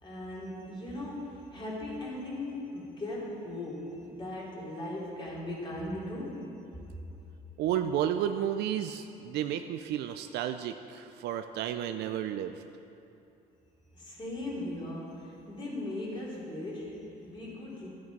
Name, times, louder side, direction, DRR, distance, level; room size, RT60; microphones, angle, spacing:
voice 1, 0.0-6.5 13.9-17.9, left 1 dB, 30° left, -4 dB, 3.0 m, -38 dB
voice 2, 7.6-12.6, right 10 dB, 75° right, 8 dB, 0.4 m, -32 dB
13.0 x 8.5 x 4.6 m, 2.8 s
cardioid pair, 110°, 17 cm